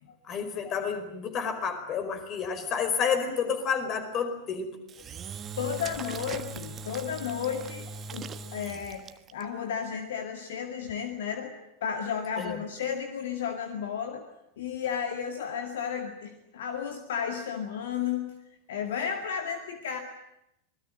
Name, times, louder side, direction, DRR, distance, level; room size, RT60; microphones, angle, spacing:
voice 1, 0.2-4.8 12.4-12.6, left 6 dB, 30° left, 8 dB, 5.0 m, -30 dB
Engine / Drill, 4.9-9.4, right 4 dB, 25° right, 1.4 m, -40 dB
voice 2, 5.6-9.1 9.3-11.5 11.8-14.2 14.6-18.3 18.7-20.0, left 7 dB, 60° left, 6 dB, 2.2 m, -33 dB
26.5 x 20.5 x 9.0 m, 0.85 s
figure-of-eight pair, 90°, 0 cm